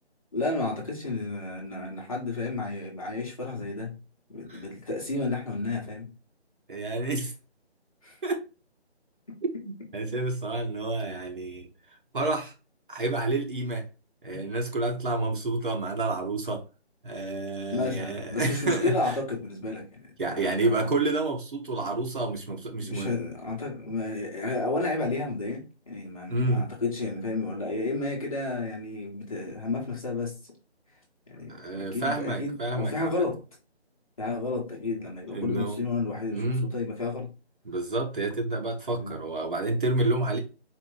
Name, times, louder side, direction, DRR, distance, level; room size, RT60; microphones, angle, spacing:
voice 1, 0.3-4.0 4.3-6.1 8.0-8.2 9.3-9.4 14.3-14.4 17.7-20.9 22.8-30.4 31.3-33.4 34.2-37.3 38.9-39.2, left 3 dB, 30° left, 0.9 m, -32 dB
voice 2, 6.7-7.3 8.2-8.5 9.4-11.7 12.1-12.5 12.9-13.8 14.2-16.6 17.0-18.9 20.2-23.1 26.3-26.7 31.5-33.2 35.3-35.8 36.3-36.7 37.7-40.4, right 2 dB, 50° right, 0.9 m, -29 dB
4.4 x 2.0 x 3.6 m
figure-of-eight pair, 160°, 33 cm